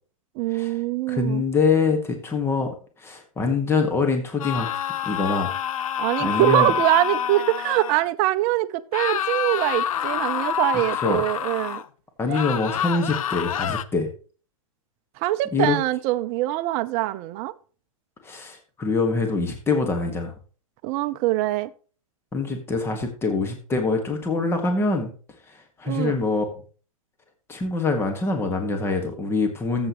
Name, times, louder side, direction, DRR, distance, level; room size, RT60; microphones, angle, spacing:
voice 1, 0.3-1.4 6.0-11.8 12.3-12.4 15.2-17.5 20.8-21.7 25.8-26.2, right 16 dB, 40° right, 0.7 m, -23 dB
voice 2, 1.1-2.7 3.0-4.8 5.0-5.5 6.2-6.7 11.0-11.2 12.2-14.1 15.5-15.8 18.2-20.3 22.3-25.1 25.5-26.4 27.5-29.9, left 4 dB, 15° left, 1.7 m, -24 dB
sound 1, 4.4-8.0 8.9-11.8 12.3-13.8, left 9 dB, 75° left, 0.7 m, -27 dB
13.0 x 8.0 x 3.0 m
hypercardioid pair, 125°, 18 cm